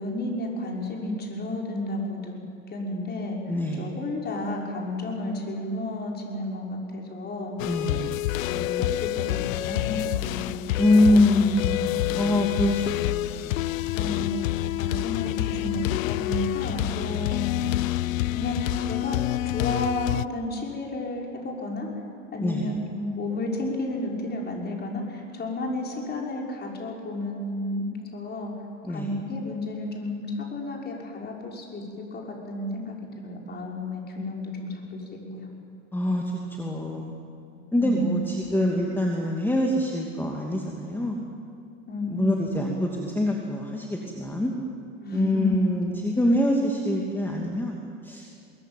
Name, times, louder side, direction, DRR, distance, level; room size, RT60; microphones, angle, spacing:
voice 1, 0.0-2.3 2.7-7.5 8.4-10.5 11.1-11.2 13.0-13.1 13.9-14.4 14.8-17.6 18.3-19.2 19.4-21.9 22.3-28.5 28.9-35.5 37.8-38.5 41.9-42.6 45.0-45.5, left 1 dB, 25° left, -1 dB, 5.8 m, -32 dB
voice 2, 3.5-3.8 7.7-8.1 10.8-14.1 22.4-22.7 28.8-29.1 35.9-36.3 36.6-37.2 37.7-41.2 42.1-44.5 45.1-47.8 48.0-48.3, left 1 dB, 5° left, 0 dB, 2.5 m, -25 dB
sound 1, 7.6-20.3, left 16 dB, 80° left, 0.7 m, -27 dB
22.0 x 20.5 x 9.2 m, 2.6 s
hypercardioid pair, 110°, 39 cm